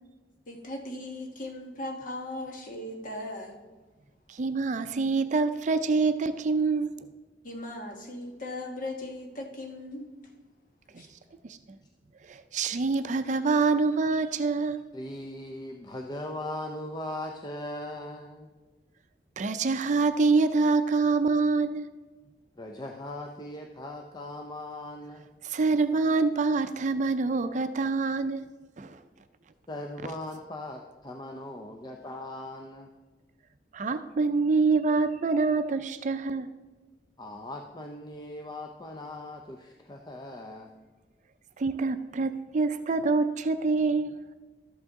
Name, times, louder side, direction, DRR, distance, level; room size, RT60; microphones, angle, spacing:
voice 1, 0.5-3.6 7.4-10.1 10.9-11.1, left 1 dB, 50° left, 2 dB, 1.4 m, -38 dB
voice 2, 4.3-6.9 10.9-11.0 11.4-11.6 12.2-14.8 19.4-21.9 25.4-28.5 28.8-29.0 33.7-36.5 41.6-44.1, right 4 dB, 45° right, 10 dB, 0.4 m, -26 dB
voice 3, 14.9-18.5 22.6-25.3 29.7-32.9 37.2-40.7, left 1 dB, 25° left, 3 dB, 0.5 m, -39 dB
12.5 x 7.9 x 3.6 m, 1.3 s
head